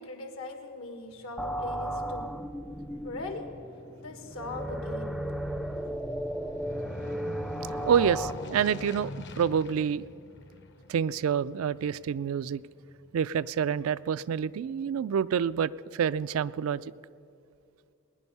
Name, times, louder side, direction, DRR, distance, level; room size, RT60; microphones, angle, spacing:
voice 1, 0.0-2.8 3.0-3.5 4.0-5.1 5.6-6.1, left 2 dB, 80° left, 5 dB, 1.6 m, -40 dB
Aircraft, 1.1-13.6 14.0-14.1, left 2 dB, 55° left, 0.9 m, -45 dB
sound 1, 1.4-8.3, right 1 dB, ahead, 0.4 m, -35 dB
voice 2, 7.9-10.0 10.9-12.6 13.1-16.8, right 7 dB, 75° right, 17 dB, 0.3 m, -27 dB
19.5 x 10.0 x 5.5 m, 2.6 s
head